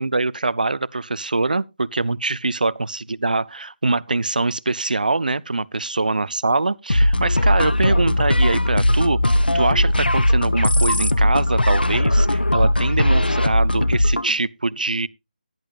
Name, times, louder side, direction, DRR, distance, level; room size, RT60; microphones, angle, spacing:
voice 1, 0.0-15.1, right 3 dB, 60° right, 0.5 m, -23 dB
sound 1, 6.9-14.3, left 1 dB, 80° left, 0.7 m, -18 dB
16.0 x 10.5 x 2.4 m
figure-of-eight pair, 155°, 5 cm